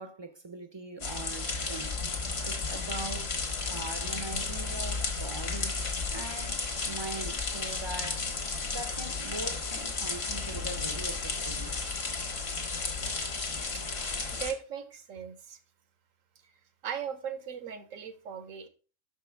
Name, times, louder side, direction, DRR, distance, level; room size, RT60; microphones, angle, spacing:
voice 1, 0.0-8.3 8.7-11.8, right 3 dB, 35° right, 0.4 m, -42 dB
sound 1, 1.0-14.5, left 4 dB, 55° left, 1.5 m, -33 dB
voice 2, 14.3-15.6 16.4-16.5 16.8-18.7, right 7 dB, 85° right, 1.3 m, -38 dB
6.1 x 5.4 x 4.4 m
omnidirectional pair, 1.3 m